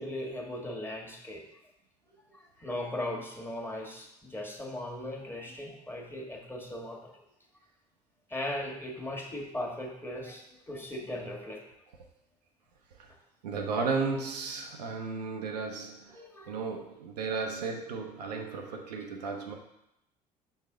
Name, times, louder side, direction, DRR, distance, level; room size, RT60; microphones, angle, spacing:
voice 1, 0.0-1.4 2.3-7.1 8.3-11.6 16.1-16.6, left 1 dB, 10° left, -1 dB, 1.5 m, -38 dB
voice 2, 13.4-16.2 16.5-19.6, right 4 dB, 75° right, 2 dB, 0.7 m, -34 dB
6.2 x 4.1 x 3.8 m, 0.84 s
figure-of-eight pair, 55°, 21 cm